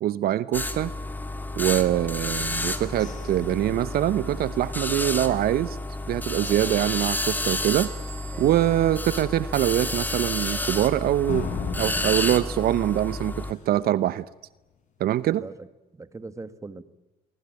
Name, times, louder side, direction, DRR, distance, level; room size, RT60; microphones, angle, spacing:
voice 1, 0.0-0.9 1.6-5.8 6.1-7.9 8.4-11.5 11.8-14.2 15.0-15.4, right 13 dB, 65° right, 17 dB, 0.8 m, -24 dB
sound 1, 0.5-13.5, left 2 dB, 10° left, 2.5 m, -30 dB
sound 2, 2.5-5.9 6.3-6.4 6.8-7.2 7.6-7.7 8.2-8.3 11.3-13.9, left 5 dB, 45° left, 6.6 m, -38 dB
Bell / Door, 7.4-9.9, right 9 dB, 45° right, 2.1 m, -47 dB
voice 2, 15.3-15.7 15.9-16.8, right 3 dB, 20° right, 13 dB, 1.7 m, -41 dB
24.0 x 23.0 x 9.3 m, 1.1 s
cardioid pair, 110°, 17 cm